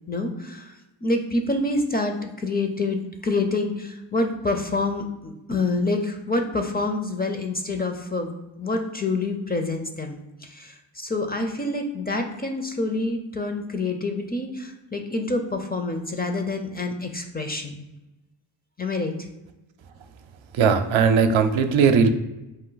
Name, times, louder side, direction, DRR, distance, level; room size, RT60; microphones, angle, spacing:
voice 1, 0.1-8.3 8.6-17.8 18.8-19.1, left 2 dB, 20° left, 4 dB, 0.4 m, -27 dB
voice 2, 20.6-22.1, right 6 dB, 75° right, 7 dB, 0.6 m, -18 dB
4.5 x 2.6 x 3.9 m, 1.0 s
wide cardioid pair, 100°, 46 cm